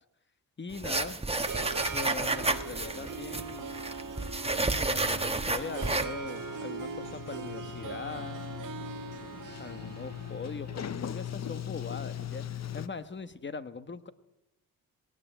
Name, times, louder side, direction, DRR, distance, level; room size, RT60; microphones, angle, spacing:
voice 1, 0.6-1.2 1.9-3.7 4.9-8.4 9.6-12.5 12.7-14.1, left 4 dB, 30° left, 12 dB, 1.2 m, -41 dB
sound 1, 0.7-6.1, right 2 dB, 15° right, 1.4 m, -31 dB
Harp, 0.8-12.9, right 5 dB, 60° right, 1.7 m, -41 dB
Sliding door, 5.0-12.9, left 10 dB, 45° left, 0.8 m, -41 dB
19.0 x 18.5 x 9.1 m, 0.90 s
wide cardioid pair, 115°, 37 cm